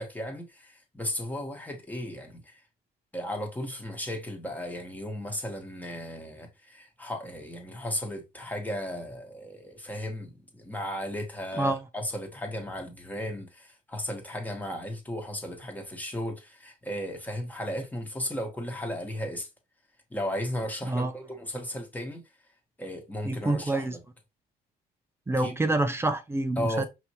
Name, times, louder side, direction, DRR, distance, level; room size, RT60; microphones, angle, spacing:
voice 1, 0.0-2.6 3.1-19.5 20.1-22.2 22.8-24.0 25.4-25.5 26.6-26.9, equal, 10° left, 1.3 m, -35 dB
voice 2, 11.5-11.8 20.9-21.1 23.2-24.0 25.3-26.8, right 2 dB, 15° right, 0.7 m, -27 dB
5.2 x 3.0 x 3.0 m
cardioid pair, 110°, 17 cm